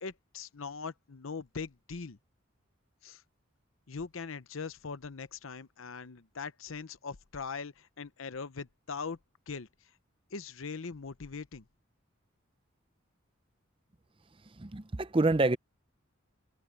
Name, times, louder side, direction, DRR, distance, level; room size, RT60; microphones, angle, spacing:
voice 1, 0.0-2.2 3.0-3.2 3.9-9.2 9.5-9.7 10.3-11.6, left 5 dB, 80° left, 0.8 m, -41 dB
voice 2, 14.6-15.6, right 2 dB, 25° right, 0.6 m, -27 dB
head